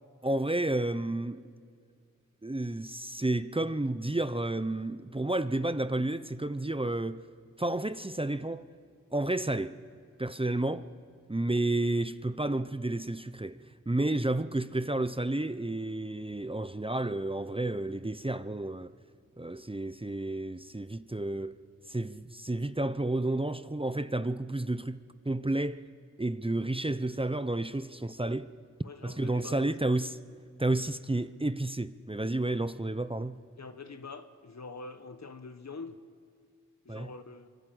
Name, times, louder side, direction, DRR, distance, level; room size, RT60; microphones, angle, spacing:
voice 1, 0.2-1.4 2.4-7.2 7.6-8.7 9.1-9.7 10.2-10.9 11.3-18.9 19.4-21.6 21.9-25.8 26.2-28.5 29.0-30.2 30.6-33.4 36.9-37.1, right 2 dB, 15° right, 0.9 m, -31 dB
voice 2, 28.8-29.7 33.6-36.0 36.8-37.5, left 4 dB, 60° left, 1.5 m, -45 dB
30.0 x 25.0 x 8.0 m
cardioid pair, 45°, 31 cm